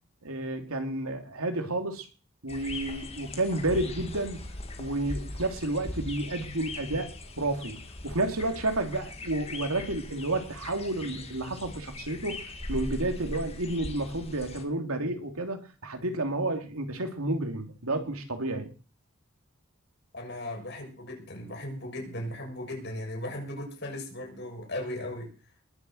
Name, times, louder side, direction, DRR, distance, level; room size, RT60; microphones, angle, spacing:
voice 1, 0.2-2.1 2.4-4.4 4.8-18.7, right 2 dB, 85° right, 2.8 m, -31 dB
sound 1, 2.5-14.6, left 2 dB, 30° left, 2.1 m, -40 dB
voice 2, 20.1-25.3, left 1 dB, 50° left, 7.0 m, -37 dB
21.0 x 7.2 x 7.8 m
head